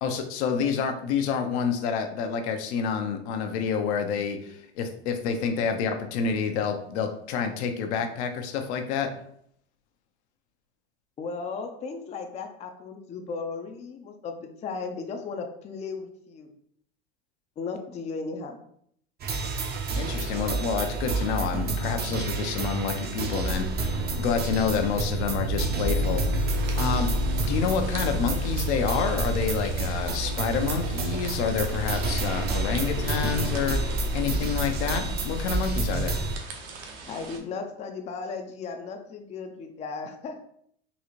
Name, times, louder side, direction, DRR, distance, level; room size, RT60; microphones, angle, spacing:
voice 1, 0.0-9.1 20.0-36.2, left 6 dB, 75° left, 5 dB, 0.7 m, -28 dB
voice 2, 11.2-16.5 17.6-18.6 37.1-40.5, left 4 dB, 20° left, 5 dB, 0.4 m, -36 dB
sound 1, 19.2-36.4, right 2 dB, 30° right, 0.6 m, -28 dB
sound 2, 26.5-37.4, right 4 dB, 65° right, 0.9 m, -43 dB
3.9 x 2.4 x 3.0 m, 0.68 s
supercardioid pair, 110°, 33 cm